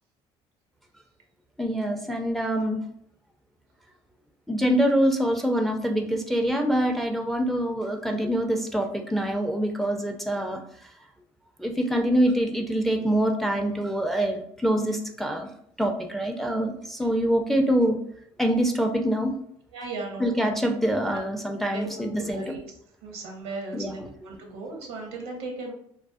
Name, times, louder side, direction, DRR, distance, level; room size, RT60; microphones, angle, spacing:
voice 1, 1.6-2.9 4.5-10.6 11.6-15.5 15.8-18.0 18.4-19.3 20.2-22.4 23.7-23.9, equal, ahead, 3 dB, 0.4 m, -25 dB
voice 2, 19.7-20.5 21.1-21.2 21.6-22.6 23.0-25.7, right 3 dB, 85° right, 1 dB, 0.7 m, -37 dB
2.5 x 2.1 x 2.3 m, 0.68 s
supercardioid pair, 75°, 13 cm